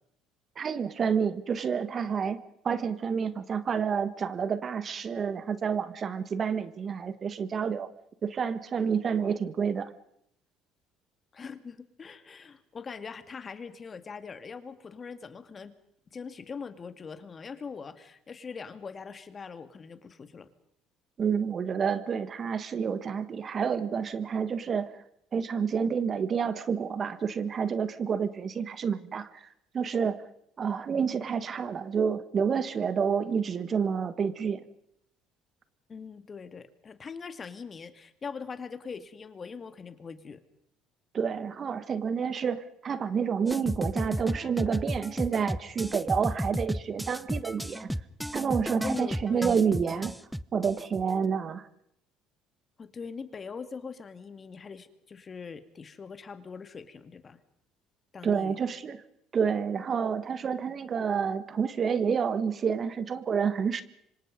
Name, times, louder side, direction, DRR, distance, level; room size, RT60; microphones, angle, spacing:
voice 1, 0.5-7.9 8.2-9.9 21.2-25.0 25.3-29.5 29.7-30.2 30.6-34.6 41.1-47.9 48.3-50.1 50.5-51.7 58.2-59.0 59.3-63.8, right 6 dB, 45° right, 14 dB, 1.6 m, -29 dB
voice 2, 11.3-15.7 16.1-20.5 35.9-40.4 48.8-49.5 52.8-57.4 58.1-58.6, left 5 dB, 35° left, 11 dB, 2.1 m, -42 dB
sound 1, 43.5-51.1, equal, ahead, 0.9 m, -33 dB
26.0 x 25.0 x 5.3 m, 0.73 s
hypercardioid pair, 70°, 0 cm